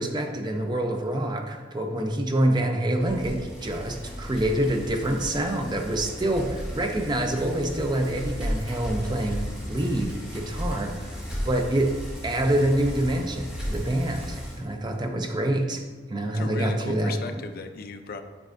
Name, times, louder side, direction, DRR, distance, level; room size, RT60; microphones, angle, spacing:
voice 1, 0.0-11.2 11.5-12.0 12.2-15.8 16.1-17.4, right 1 dB, 20° right, 4 dB, 0.5 m, -26 dB
Bicycle, 3.0-14.6, equal, 5° right, 1.3 m, -35 dB
voice 2, 16.3-18.2, left 4 dB, 50° left, 7 dB, 0.4 m, -36 dB
8.1 x 5.3 x 2.6 m, 1.4 s
head